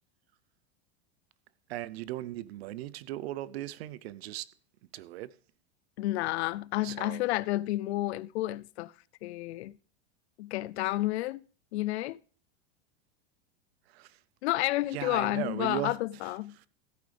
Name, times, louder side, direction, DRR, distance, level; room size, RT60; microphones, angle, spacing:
voice 1, 1.7-4.5 4.9-5.3 6.8-7.3 13.9-14.2 14.9-16.0 16.2-16.7, right 15 dB, 70° right, 0.7 m, -38 dB
voice 2, 6.0-8.9 9.2-9.7 10.4-11.4 11.7-12.2 14.4-16.6, left 17 dB, 80° left, 0.5 m, -30 dB
15.0 x 8.5 x 3.4 m
supercardioid pair, 155°, 33 cm